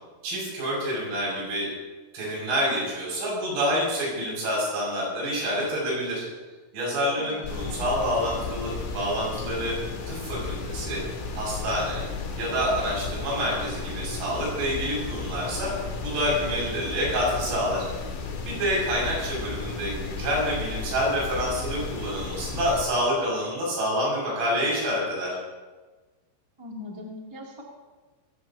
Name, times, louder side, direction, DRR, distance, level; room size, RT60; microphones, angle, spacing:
voice 1, 0.2-1.7 2.1-6.3 6.7-9.8 10.1-11.0 11.3-12.1 12.4-15.7 16.0-17.9 18.4-25.3, equal, 80° right, -4 dB, 9.3 m, -27 dB
voice 2, 7.2-7.8 26.6-27.6, left 2 dB, 10° right, -3 dB, 1.3 m, -41 dB
sound 1, 7.4-22.8, left 4 dB, 70° left, 4.5 m, -34 dB
22.0 x 16.5 x 2.9 m, 1.3 s
omnidirectional pair, 5.9 m